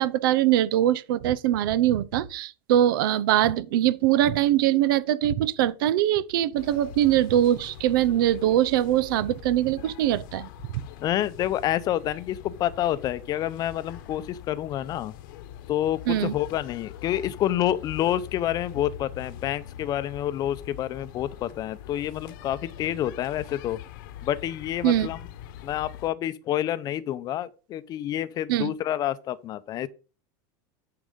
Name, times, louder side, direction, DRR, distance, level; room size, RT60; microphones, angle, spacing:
voice 1, 0.0-10.5 16.1-16.4 24.8-25.1 28.5-28.7, right 12 dB, 80° right, 0.7 m, -22 dB
sound 1, 6.6-26.1, left 11 dB, 75° left, 1.0 m, -43 dB
voice 2, 11.0-15.1 15.7-23.8 24.2-25.2 25.6-29.9, left 12 dB, 35° left, 0.6 m, -28 dB
10.0 x 4.7 x 5.2 m
supercardioid pair, 145°, 11 cm